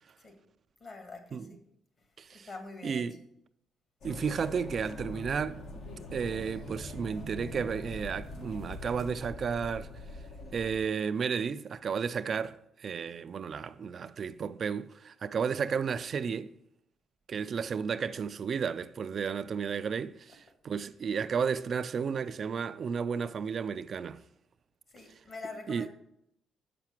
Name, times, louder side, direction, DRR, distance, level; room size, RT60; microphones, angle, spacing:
voice 1, 0.8-1.6 2.3-3.0 24.9-25.9, left 3 dB, 45° left, 1.8 m, -45 dB
voice 2, 2.2-2.5 2.8-3.2 4.0-5.6 6.1-9.9 10.5-16.5 17.3-24.2 25.7-25.9, right 6 dB, 50° right, 0.3 m, -33 dB
sound 1, 4.0-10.8, left 2 dB, 65° left, 1.3 m, -43 dB
6.7 x 5.8 x 5.9 m
cardioid pair, 90°, 0 cm